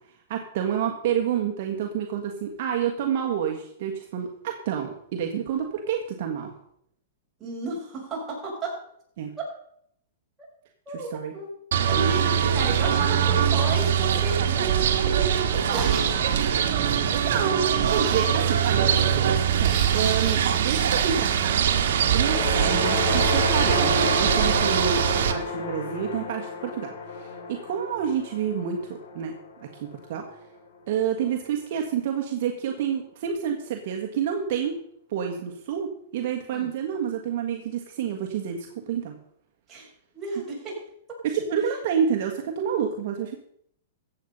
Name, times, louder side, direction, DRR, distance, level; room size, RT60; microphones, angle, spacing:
voice 1, 0.3-6.5 9.2-9.3 10.9-11.3 17.1-19.0 19.3-21.6 22.1-28.8 29.1-29.3 29.6-30.2 30.9-34.8 35.1-39.1 41.3-43.3, right 8 dB, 55° right, 2 dB, 1.6 m, -29 dB
voice 2, 7.4-8.7 10.9-11.5 11.9-15.9 36.5-36.7 39.7-39.9 40.1-40.8, right 3 dB, 15° right, -5 dB, 6.0 m, -32 dB
sound 1, 11.7-25.3, right 8 dB, 70° right, 1.6 m, -22 dB
sound 2, 15.5-21.5, right 7 dB, 35° right, 3.8 m, -36 dB
sound 3, 22.0-30.4, left 4 dB, 85° left, 3.5 m, -31 dB
14.5 x 8.2 x 5.4 m, 0.69 s
hypercardioid pair, 150°, 0 cm